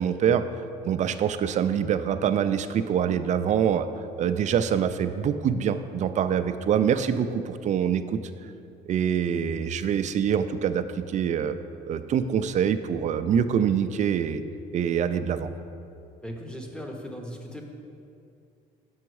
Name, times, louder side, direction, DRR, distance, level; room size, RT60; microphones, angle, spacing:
voice 1, 0.0-3.9 4.2-8.2 8.9-11.5 11.9-14.4 14.7-15.5, right 8 dB, 45° right, 11 dB, 0.4 m, -25 dB
voice 2, 16.2-17.6, equal, 5° left, 2 dB, 0.8 m, -37 dB
6.2 x 5.7 x 4.7 m, 2.5 s
cardioid pair, 110°, 17 cm